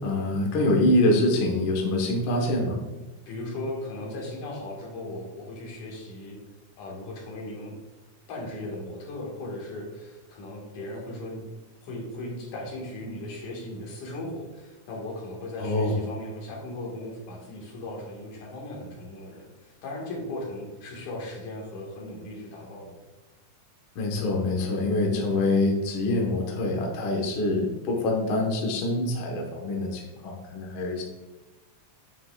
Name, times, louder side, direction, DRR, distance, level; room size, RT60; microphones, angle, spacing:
voice 1, 0.0-2.8 15.6-15.9 23.9-31.0, left 2 dB, 55° left, -1 dB, 1.6 m, -25 dB
voice 2, 3.3-6.4 6.8-7.8 8.3-11.4 11.8-23.0, left 1 dB, 75° left, -2 dB, 3.0 m, -37 dB
9.2 x 5.9 x 2.3 m, 1.1 s
omnidirectional pair, 3.6 m